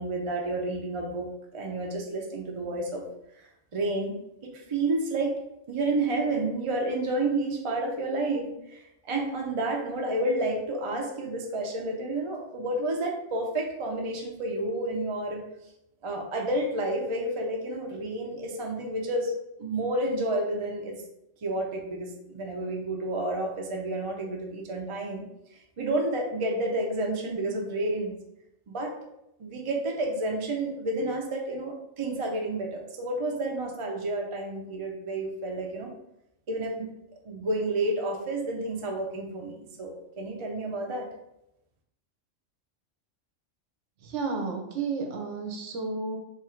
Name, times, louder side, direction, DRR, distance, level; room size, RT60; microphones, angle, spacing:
voice 1, 0.0-3.0 3.7-5.4 5.7-15.5 16.0-19.3 19.6-21.0 21.4-28.1 28.7-28.9 29.4-35.9 36.5-36.9 37.2-41.1, right 2 dB, 40° right, 1 dB, 0.5 m, -30 dB
voice 2, 44.0-46.2, right 4 dB, 70° right, 3 dB, 1.0 m, -32 dB
3.3 x 2.5 x 4.3 m, 0.84 s
omnidirectional pair, 1.3 m